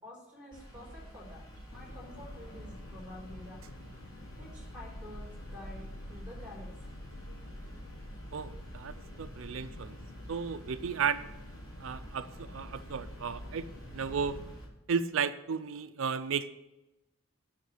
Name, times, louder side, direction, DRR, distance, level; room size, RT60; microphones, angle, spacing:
voice 1, 0.0-3.7 4.4-6.7, left 1 dB, 5° right, -3 dB, 3.8 m, -49 dB
sound 1, 0.5-14.7, right 1 dB, 20° left, 3.2 m, -49 dB
sound 2, 1.7-14.6, left 1 dB, 70° left, 0.9 m, -48 dB
voice 2, 8.3-10.0 10.3-11.3 11.8-13.7 13.9-14.4 14.9-16.5, right 6 dB, 85° right, 11 dB, 0.5 m, -34 dB
9.2 x 5.7 x 8.2 m, 0.96 s
head